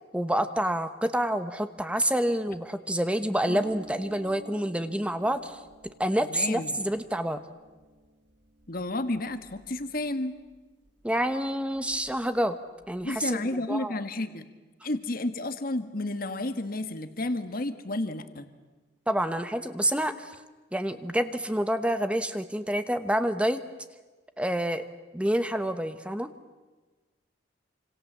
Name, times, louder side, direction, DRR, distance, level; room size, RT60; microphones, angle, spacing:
voice 1, 0.1-7.4 11.0-12.6 12.9-14.0 19.1-20.3 20.7-23.6 24.4-24.8 25.1-26.3, right 1 dB, 5° right, 10 dB, 1.0 m, -28 dB
Harp, 3.4-10.9 11.2-12.3 12.5-13.2, equal, 80° right, 5.0 m, -49 dB
voice 2, 6.3-6.7 8.7-10.3 13.0-14.4 14.8-18.5, left 2 dB, 50° left, 9 dB, 1.6 m, -31 dB
27.5 x 26.0 x 7.5 m, 1.3 s
head